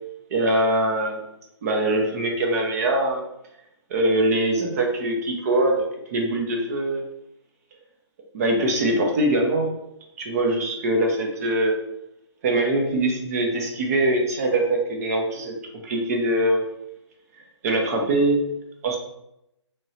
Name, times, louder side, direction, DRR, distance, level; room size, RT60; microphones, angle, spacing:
voice 1, 0.3-1.2 1.6-3.2 3.9-7.0 8.3-9.7 10.2-11.8 12.4-15.6 15.8-16.6 17.6-18.4 18.8-19.0, right 1 dB, 30° right, 2 dB, 0.7 m, -22 dB
3.4 x 3.2 x 2.8 m, 0.81 s
hypercardioid pair, 150°, 15 cm